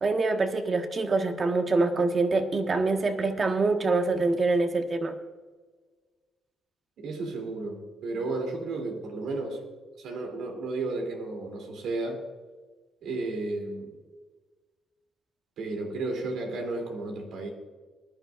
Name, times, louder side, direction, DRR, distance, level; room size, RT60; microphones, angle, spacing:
voice 1, 0.0-5.2, right 3 dB, 40° right, 5 dB, 1.6 m, -25 dB
voice 2, 7.0-9.6 10.0-12.2 13.0-13.9 15.6-17.5, right 2 dB, 80° right, 2 dB, 3.2 m, -33 dB
20.0 x 11.5 x 2.6 m, 1.4 s
cardioid pair, 90°, 0 cm